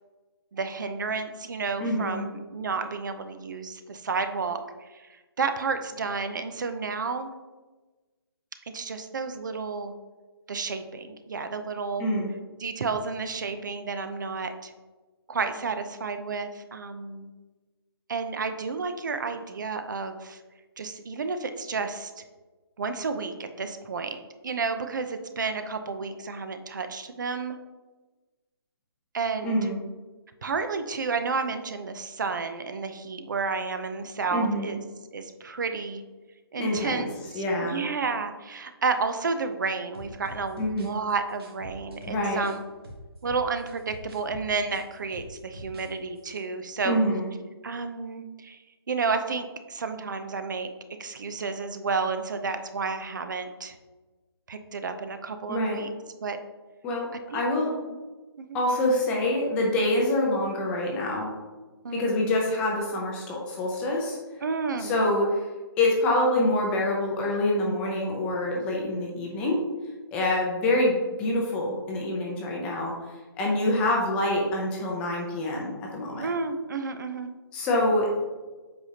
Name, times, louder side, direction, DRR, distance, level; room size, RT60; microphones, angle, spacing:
voice 1, 0.5-4.6 4.9-7.3 8.7-9.9 10.5-12.1 12.6-14.7 15.3-17.3 18.1-20.4 20.8-22.2 22.8-27.6 29.1-29.6 30.4-34.8 35.1-36.0 36.5-42.6 43.2-47.0 47.6-48.6 48.9-50.7 51.0-53.7 54.5-55.9 56.2-56.4 57.3-58.0 58.4-58.6 61.8-62.1 64.4-64.9 76.2-77.3, right 4 dB, 50° right, 8 dB, 0.6 m, -31 dB
voice 2, 1.8-2.3 12.0-12.3 29.4-29.8 34.3-34.8 36.6-37.1 37.3-37.8 40.6-40.9 42.1-42.5 46.8-47.3 55.5-55.8 56.8-57.7 58.5-61.3 61.9-64.2 64.8-65.4 65.8-69.6 70.1-73.0 73.4-76.3 77.5-78.1, left 1 dB, 10° left, -2 dB, 0.5 m, -26 dB
sound 1, 39.9-42.6 42.8-45.9 46.2-46.4, equal, 70° right, 1.8 m, -44 dB
8.0 x 5.0 x 2.8 m, 1.2 s
hypercardioid pair, 170°, 13 cm